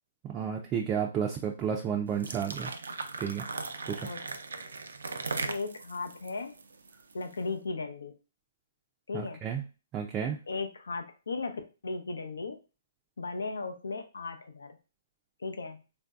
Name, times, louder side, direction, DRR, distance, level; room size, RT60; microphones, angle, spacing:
voice 1, 0.2-2.7 3.2-3.5 3.9-4.1 9.1-9.6 9.9-10.4, right 8 dB, 20° right, 1 dB, 0.4 m, -31 dB
sound 1, 2.1-7.3, right 3 dB, 85° right, 0.4 m, -38 dB
voice 2, 5.5-6.6 7.1-8.1 9.1-9.4 10.5-12.6 13.2-14.7 15.4-15.8, left 3 dB, 90° left, 6 dB, 0.6 m, -36 dB
3.1 x 2.6 x 2.3 m, 0.32 s
hypercardioid pair, 150°, 0 cm